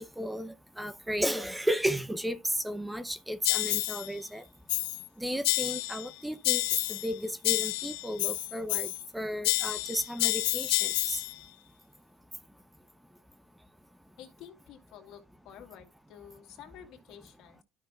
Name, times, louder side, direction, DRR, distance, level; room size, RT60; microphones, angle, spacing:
voice 1, 0.0-4.4 5.2-6.6 6.9-11.2, equal, 5° right, 0.5 m, -34 dB
sound 1, 3.4-4.1 4.7-5.1 5.4-6.1 6.4-7.1 7.4-9.1 9.4-11.3, left 22 dB, 85° left, 0.3 m, -29 dB
voice 2, 14.2-17.6, left 9 dB, 60° left, 2.1 m, -50 dB
12.5 x 6.0 x 2.3 m
supercardioid pair, 110°, 0 cm